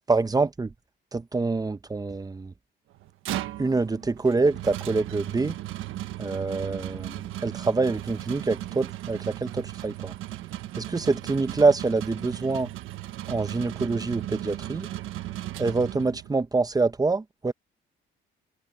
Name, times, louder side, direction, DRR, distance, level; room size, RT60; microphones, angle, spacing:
voice 1, 0.1-0.7 1.1-2.5 3.6-5.6 6.2-10.1 10.7-12.7 13.3-14.9 15.6-17.5, right 3 dB, 20° right, 1.0 m, -26 dB
sound 1, 2.9-16.4, right 14 dB, 90° right, 1.3 m, -36 dB
cardioid pair, 90°, 20 cm